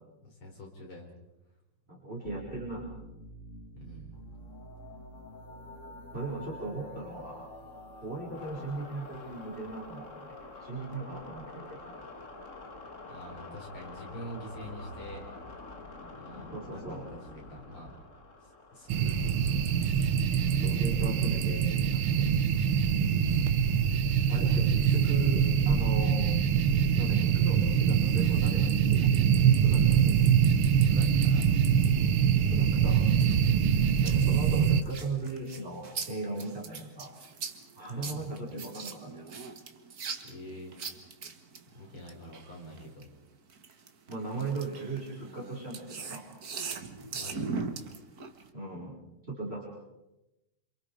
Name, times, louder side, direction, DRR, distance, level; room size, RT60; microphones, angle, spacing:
voice 1, 0.2-1.1 3.8-4.2 13.1-15.2 16.1-18.0 18.4-19.6 20.7-21.3 30.8-31.5 37.9-38.2 40.2-40.8 41.7-43.1 47.0-47.6, equal, 75° left, 0 dB, 6.2 m, -46 dB
voice 2, 1.9-2.9 6.1-7.5 8.0-10.4 10.6-12.0 16.5-17.1 20.6-22.3 24.3-26.3 27.0-29.3 29.6-30.2 32.5-33.0 34.0-37.1 37.8-39.2 44.1-46.3 48.5-49.0 49.3-49.6, right 3 dB, 25° right, -3 dB, 5.5 m, -38 dB
sound 1, 2.2-20.7, left 2 dB, 35° left, 2.4 m, -47 dB
sound 2, 18.9-34.8, right 8 dB, 85° right, 1.9 m, -24 dB
sound 3, 33.2-43.0 43.5-48.5, right 5 dB, 45° right, 2.0 m, -40 dB
28.0 x 27.0 x 5.0 m, 0.96 s
omnidirectional pair, 2.3 m